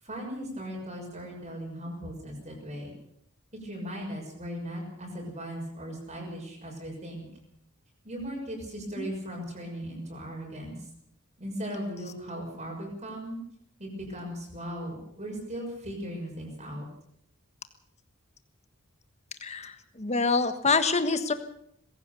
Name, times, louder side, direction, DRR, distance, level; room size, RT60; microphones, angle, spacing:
voice 1, 0.0-2.9 3.6-7.3 8.0-10.9 11.4-13.4 13.8-16.8, equal, 35° right, -1 dB, 6.6 m, -38 dB
voice 2, 19.4-19.7 20.0-21.3, left 4 dB, 35° left, 9 dB, 1.5 m, -26 dB
22.5 x 16.5 x 7.0 m, 0.70 s
head